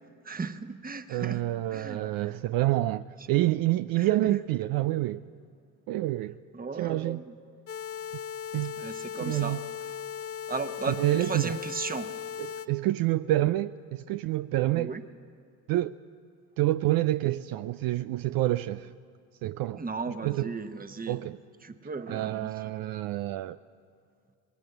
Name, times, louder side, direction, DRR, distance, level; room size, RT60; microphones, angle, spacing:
voice 1, 0.2-1.4 1.7-2.4 4.0-4.4 6.5-7.3 8.8-9.6 10.5-12.1 14.7-15.0 19.8-21.2 21.6-22.7, right 4 dB, 20° right, 1.1 m, -36 dB
voice 2, 1.1-5.2 5.9-6.4 6.8-7.2 8.5-8.7 9.3-9.6 10.9-11.5 12.4-14.9 15.7-16.0 16.6-18.9 19.4-19.8 20.2-20.5 21.1-21.4 22.1-23.6, right 16 dB, 65° right, 0.5 m, -27 dB
sound 1, 7.7-12.7, left 8 dB, 35° left, 0.8 m, -37 dB
19.5 x 18.0 x 7.9 m
supercardioid pair, 70°, 38 cm